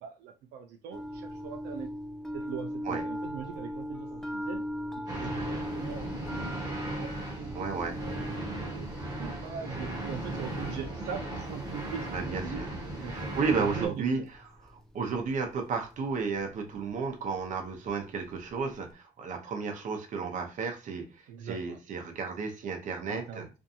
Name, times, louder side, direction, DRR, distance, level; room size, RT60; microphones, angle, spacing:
voice 1, 0.0-1.9 2.3-4.6 5.1-6.3 6.7-7.6 7.9-8.9 9.2-12.2 12.4-13.2 13.6-14.3 21.3-21.8 23.1-23.5, right 8 dB, 85° right, 4 dB, 0.4 m, -41 dB
sound 1, 0.9-18.9, equal, 5° left, 0.3 m, -41 dB
sound 2, 5.1-13.9, right 1 dB, 25° right, 1.1 m, -37 dB
voice 2, 7.5-8.0 12.1-12.7 13.1-14.2 14.7-23.5, right 5 dB, 50° right, 4 dB, 0.7 m, -33 dB
2.6 x 2.2 x 2.7 m, 0.30 s
cardioid pair, 110°, 17 cm